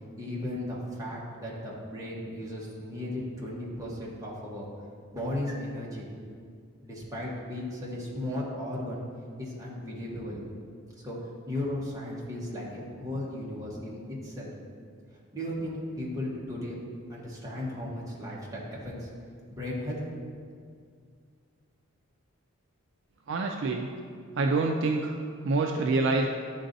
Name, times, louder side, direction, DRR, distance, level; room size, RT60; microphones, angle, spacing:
voice 1, 0.2-4.7 5.1-6.1 6.8-9.0 9.4-10.4 11.0-11.2 11.5-14.5 15.3-16.8 17.1-19.1 19.5-20.0, left 1 dB, 15° right, -5 dB, 1.1 m, -35 dB
voice 2, 23.3-23.9 24.4-25.1 25.4-26.3, right 3 dB, 55° right, 2 dB, 0.3 m, -26 dB
10.0 x 3.9 x 2.6 m, 2.2 s
head